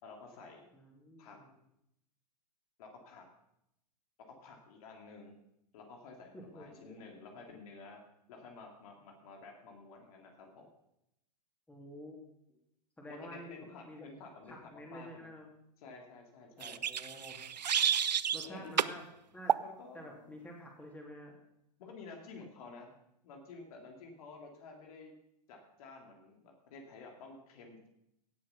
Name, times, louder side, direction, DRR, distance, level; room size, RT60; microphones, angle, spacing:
voice 1, 0.0-0.6 1.2-1.4 2.8-3.2 4.4-5.3 5.7-8.0 8.3-10.7 13.1-15.3 15.8-16.8 18.4-19.0 19.6-20.4 21.8-22.9 23.2-25.1 25.5-27.9, left 4 dB, 60° left, 2 dB, 3.0 m, -51 dB
voice 2, 0.7-1.5 6.3-7.0 11.7-12.2 12.5-12.6 13.0-14.1 14.4-15.5 16.6-17.5 18.3-19.0 19.3-19.6 19.9-21.4, equal, 5° left, 0 dB, 3.3 m, -49 dB
sound 1, 16.6-18.5 18.8-19.0 19.5-19.7, right 8 dB, 90° right, 0.6 m, -30 dB
17.0 x 7.5 x 5.8 m, 0.82 s
hypercardioid pair, 110°, 21 cm